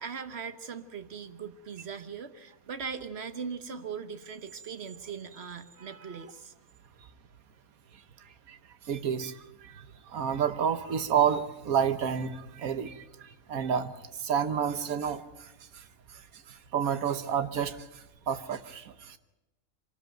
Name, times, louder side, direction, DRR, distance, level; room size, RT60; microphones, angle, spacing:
voice 1, 0.0-6.5, right 6 dB, 50° right, 10 dB, 1.3 m, -40 dB
voice 2, 8.9-15.8 16.1-16.2 16.5-19.2, right 8 dB, 80° right, 12 dB, 1.5 m, -30 dB
24.5 x 13.5 x 9.0 m, 1.0 s
omnidirectional pair, 1.5 m